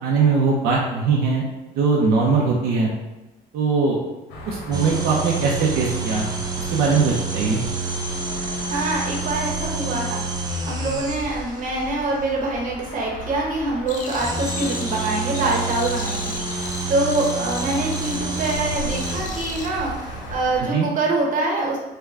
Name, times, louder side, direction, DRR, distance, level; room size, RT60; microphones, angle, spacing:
voice 1, 0.0-1.5 1.8-2.9 3.5-4.0 4.5-6.3 6.7-7.6 20.6-20.9, right 4 dB, 80° right, -3 dB, 0.6 m, -20 dB
sound 1, 4.3-20.6, right 1 dB, 90° left, 0.8 m, -37 dB
sound 2, 4.7-11.6 14.0-19.8, right 3 dB, 25° right, 0.5 m, -28 dB
voice 2, 8.3-16.3 16.9-21.8, right 2 dB, 50° right, -2 dB, 0.9 m, -25 dB
sound 3, 13.9-19.7, left 5 dB, 50° left, 0.4 m, -37 dB
3.4 x 2.2 x 3.6 m, 1.0 s
cardioid pair, 110°, 17 cm